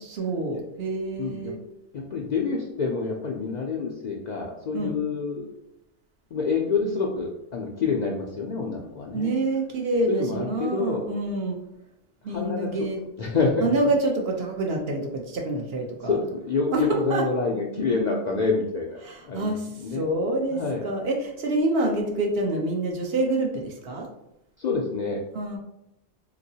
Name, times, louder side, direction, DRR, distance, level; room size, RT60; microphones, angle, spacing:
voice 1, 0.1-1.6 4.7-4.9 9.1-11.6 12.2-13.0 13.6-16.2 16.7-16.8 17.1-17.2 19.0-24.1 25.3-25.6, right 2 dB, 60° right, 1 dB, 0.8 m, -27 dB
voice 2, 1.2-1.5 1.9-5.4 6.3-9.3 10.1-11.0 12.3-12.7 13.2-13.7 16.0-20.1 20.5-20.8 24.6-25.2, left 4 dB, 60° left, -2 dB, 0.4 m, -27 dB
3.6 x 2.9 x 2.7 m, 0.83 s
omnidirectional pair, 1.2 m